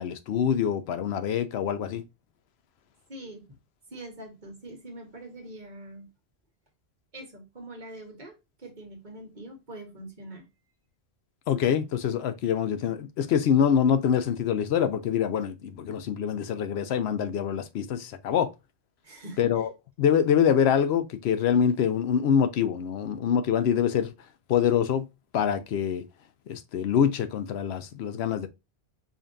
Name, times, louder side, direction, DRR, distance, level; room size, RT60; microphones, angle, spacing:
voice 1, 0.0-2.0 11.5-18.5 19.4-19.7 20.0-24.1 24.5-25.1 25.3-26.0 26.5-28.5, left 8 dB, 85° left, 0.8 m, -25 dB
voice 2, 3.1-3.6 3.9-6.1 7.1-10.4 19.0-19.6, right 1 dB, 50° right, 1.2 m, -43 dB
5.0 x 2.6 x 2.5 m
omnidirectional pair, 1.1 m